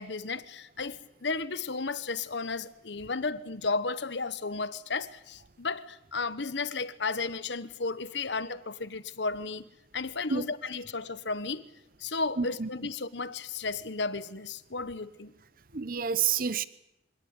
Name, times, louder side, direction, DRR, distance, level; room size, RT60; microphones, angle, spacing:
voice 1, 0.0-9.7 9.9-11.6 12.0-15.3, left 4 dB, 75° left, 1.2 m, -34 dB
voice 2, 12.4-12.7 15.7-16.7, right 7 dB, 50° right, 0.8 m, -28 dB
25.5 x 18.5 x 9.8 m
head